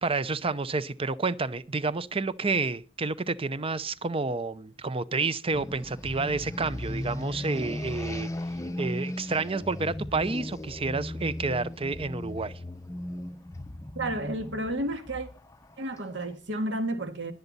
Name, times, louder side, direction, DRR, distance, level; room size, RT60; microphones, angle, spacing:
voice 1, 0.0-8.3 8.8-12.5, right 3 dB, 30° right, 0.7 m, -29 dB
sound 1, 5.5-16.3, left 1 dB, 15° left, 0.8 m, -37 dB
voice 2, 14.0-15.3 15.8-17.3, right 1 dB, 65° right, 1.9 m, -31 dB
21.5 x 8.0 x 4.1 m
head